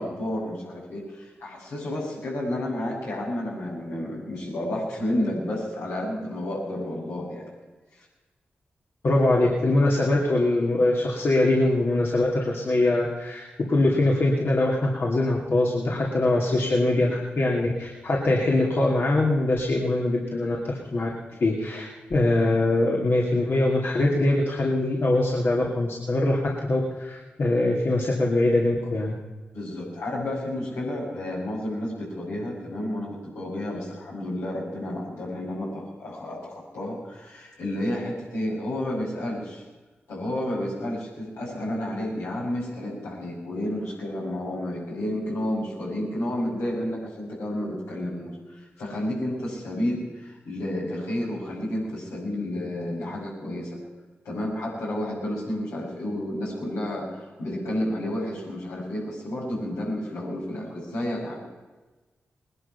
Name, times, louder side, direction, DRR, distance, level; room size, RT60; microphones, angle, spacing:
voice 1, 0.0-7.5 7.9-8.0 29.5-39.6 40.1-53.8 54.2-61.4, left 1 dB, 85° left, -4 dB, 5.8 m, -31 dB
voice 2, 9.0-21.1 21.4-29.2, left 2 dB, 60° left, -3 dB, 2.6 m, -23 dB
19.5 x 11.0 x 5.7 m, 1.2 s
supercardioid pair, 40°, 5 cm